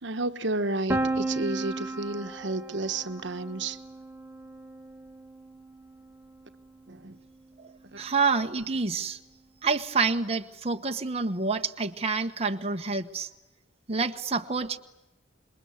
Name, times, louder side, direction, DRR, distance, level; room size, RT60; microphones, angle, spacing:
voice 1, 0.0-3.8 6.9-7.2, right 2 dB, 65° right, 10 dB, 1.3 m, -31 dB
Piano, 0.9-6.7, right 2 dB, 10° right, 1.5 m, -34 dB
voice 2, 8.0-9.2 9.6-13.3 13.9-14.8, right 4 dB, 35° right, 5 dB, 1.1 m, -28 dB
27.5 x 22.5 x 9.5 m, 1.0 s
head